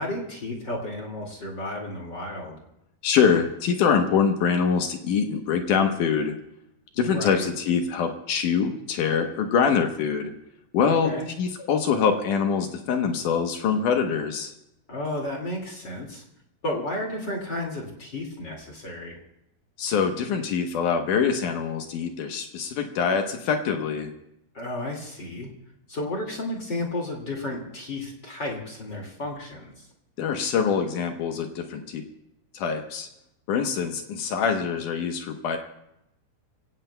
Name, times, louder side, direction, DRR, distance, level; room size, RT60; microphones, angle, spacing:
voice 1, 0.0-2.6 6.9-7.5 10.8-11.3 14.9-16.2 16.6-19.1 24.5-25.5 25.9-29.7, left 1 dB, 35° left, 0 dB, 1.9 m, -32 dB
voice 2, 3.0-6.4 7.0-10.3 10.7-11.1 11.4-14.5 19.8-24.1 30.2-32.0 32.5-33.1 33.5-35.6, left 6 dB, 70° left, 4 dB, 1.9 m, -24 dB
27.0 x 17.0 x 2.2 m, 0.84 s
omnidirectional pair, 4.9 m